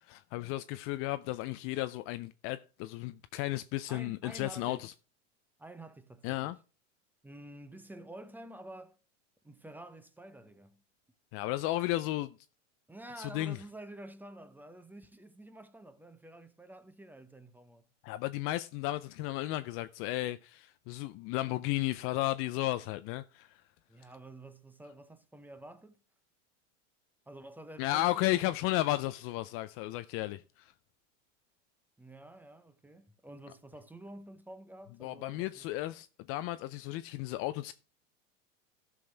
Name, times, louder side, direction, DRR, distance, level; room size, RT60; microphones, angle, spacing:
voice 1, 0.1-4.9 6.2-6.6 11.3-12.3 13.2-13.6 18.0-23.6 27.8-30.7 35.0-37.7, left 16 dB, 40° left, 0.4 m, -34 dB
voice 2, 3.9-4.9 5.6-6.6 7.2-9.0 9.4-10.8 12.9-17.9 23.9-26.0 27.3-28.6 32.0-35.7, right 1 dB, 5° right, 0.7 m, -49 dB
14.5 x 6.2 x 3.3 m
supercardioid pair, 125°, 38 cm